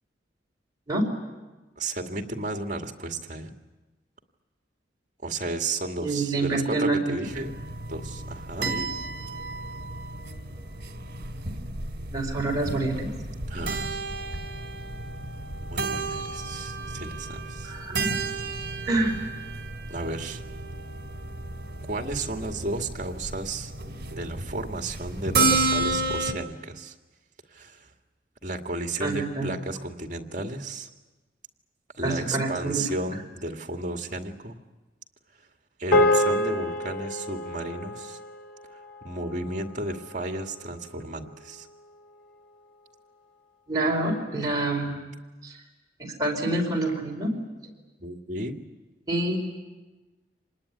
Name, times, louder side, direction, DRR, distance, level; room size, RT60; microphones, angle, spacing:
voice 1, 1.8-3.5 5.2-7.5 7.9-8.9 13.5-13.9 15.7-17.7 19.9-20.4 21.9-23.7 24.1-26.9 27.5-27.9 28.4-30.9 32.0-34.6 35.8-38.2 39.0-41.7 48.0-48.6, right 2 dB, 45° right, 4 dB, 2.1 m, -33 dB
voice 2, 6.0-7.1 12.1-13.1 17.6-18.1 18.8-19.2 29.0-29.5 32.0-32.8 43.7-45.0 45.4-45.6 46.0-47.3 49.1-49.4, right 2 dB, 20° right, -1 dB, 4.8 m, -27 dB
sound 1, 7.2-26.3, right 3 dB, 60° right, 2.8 m, -32 dB
sound 2, 35.9-40.4, left 1 dB, 85° left, 3.6 m, -27 dB
26.0 x 20.0 x 9.8 m, 1.2 s
head